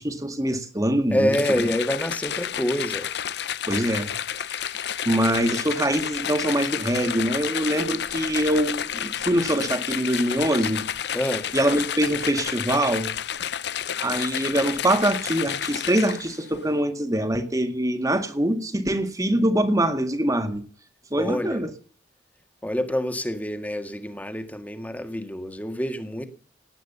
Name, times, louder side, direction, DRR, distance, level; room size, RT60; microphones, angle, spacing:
voice 1, 0.0-1.7 3.7-4.1 4.6-10.8 11.5-13.1 14.0-20.6 21.1-21.7, right 1 dB, 20° right, 9 dB, 1.9 m, -24 dB
voice 2, 1.1-3.1 11.1-11.5 21.2-21.6 22.6-26.3, equal, 10° left, 8 dB, 1.8 m, -27 dB
sound 1, 1.3-16.4, left 9 dB, 65° left, 0.7 m, -30 dB
18.0 x 9.3 x 6.8 m, 0.42 s
head